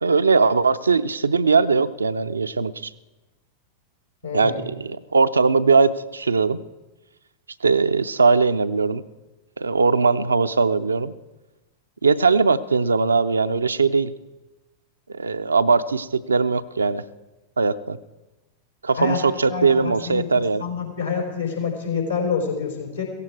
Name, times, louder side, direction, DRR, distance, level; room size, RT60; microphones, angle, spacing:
voice 1, 0.0-2.9 4.3-6.6 7.6-9.0 9.6-11.1 12.0-14.1 15.1-17.0 17.6-18.0 18.8-20.6, right 4 dB, 75° right, 10 dB, 0.5 m, -20 dB
voice 2, 4.2-4.6 19.0-19.2 19.5-23.0, left 6 dB, 80° left, 1 dB, 4.4 m, -27 dB
17.0 x 15.5 x 4.7 m, 1.1 s
figure-of-eight pair, 90°, 0 cm